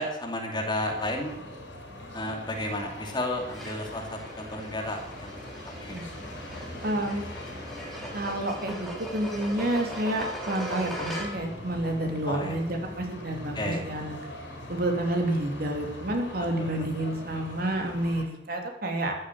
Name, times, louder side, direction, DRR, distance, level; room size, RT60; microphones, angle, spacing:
voice 1, 0.0-1.4 2.1-5.4 5.8-6.1 12.3-12.6 13.5-13.8 16.6-16.9, left 1 dB, 25° left, 2 dB, 2.5 m, -32 dB
sound 1, 0.8-18.2, left 1 dB, 75° left, 5.5 m, -42 dB
sound 2, 3.5-11.6, equal, ahead, 3.6 m, -40 dB
voice 2, 6.8-7.2 8.1-14.2 14.7-19.2, right 1 dB, 55° right, 3 dB, 2.9 m, -29 dB
14.0 x 9.8 x 7.8 m, 0.90 s
head